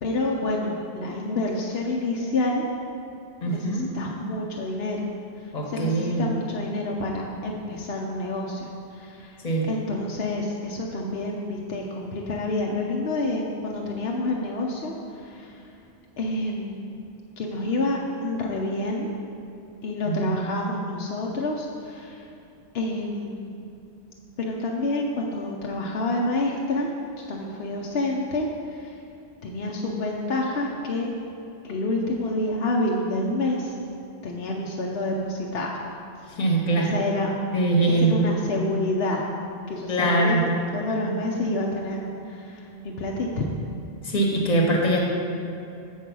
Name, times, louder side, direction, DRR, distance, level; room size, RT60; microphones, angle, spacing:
voice 1, 0.0-2.7 3.5-5.0 5.7-8.6 8.9-9.4 9.7-15.6 16.2-16.9 17.4-19.1 19.8-22.2 22.7-23.5 24.4-26.9 27.3-28.9 29.4-31.1 31.6-33.7 34.2-35.7 36.8-37.4 38.0-39.2 39.7-40.4 40.7-43.6, left 2 dB, 65° left, -1 dB, 0.9 m, -28 dB
voice 2, 3.4-3.8 5.5-6.3 9.4-9.7 20.0-20.4 36.3-36.9 37.5-38.2 39.9-40.4 44.0-45.0, right 2 dB, 35° left, 0 dB, 1.2 m, -22 dB
8.1 x 4.6 x 6.0 m, 2.8 s
omnidirectional pair, 1.2 m